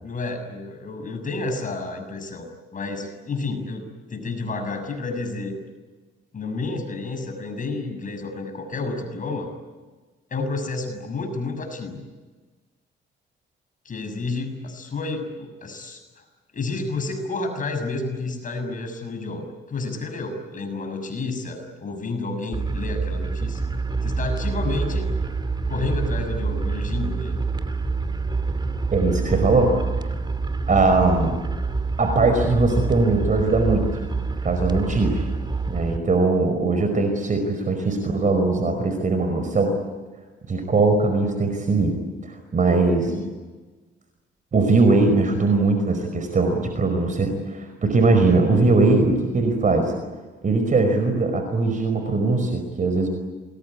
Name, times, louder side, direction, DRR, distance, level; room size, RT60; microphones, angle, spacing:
voice 1, 0.0-5.6 6.3-9.5 10.3-12.1 13.8-16.2 16.5-23.6 24.0-25.1 25.7-27.4 43.0-43.4, left 3 dB, 40° left, 6 dB, 6.8 m, -30 dB
sound 1, 22.5-36.0, right 4 dB, 20° right, 2.7 m, -26 dB
voice 2, 28.9-29.7 30.7-31.4 32.0-34.0 34.4-35.2 35.7-39.7 40.5-42.0 42.3-43.1 44.5-49.9 50.4-53.1, right 3 dB, 40° right, 6 dB, 5.1 m, -20 dB
27.5 x 21.5 x 9.8 m, 1.3 s
cardioid pair, 90°, 20 cm